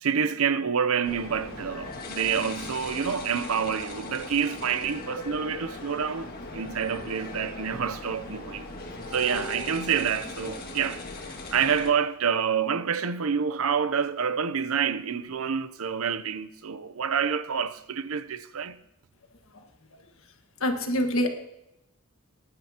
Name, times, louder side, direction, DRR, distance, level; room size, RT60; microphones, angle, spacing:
voice 1, 0.0-8.6 9.1-18.8, right 7 dB, 70° right, 0.6 m, -28 dB
sound 1, 1.0-11.9, left 2 dB, 45° left, 1.8 m, -39 dB
voice 2, 20.6-21.3, left 1 dB, 65° left, 1.6 m, -25 dB
21.5 x 10.5 x 2.9 m
head